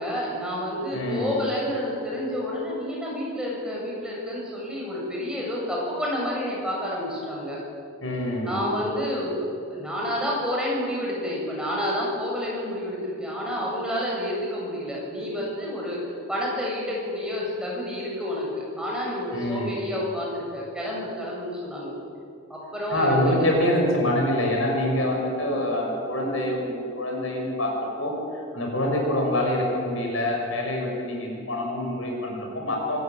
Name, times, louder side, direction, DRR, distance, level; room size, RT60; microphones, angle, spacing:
voice 1, 0.0-7.6 8.4-9.4 9.7-16.0 16.3-21.9 22.5-23.5 25.4-25.5, equal, 5° right, -4 dB, 7.4 m, -29 dB
voice 2, 0.9-1.4 8.0-8.6 19.3-19.8 22.9-28.1 28.5-33.0, left 1 dB, 85° left, 0 dB, 6.5 m, -25 dB
25.0 x 15.5 x 9.3 m, 2.3 s
head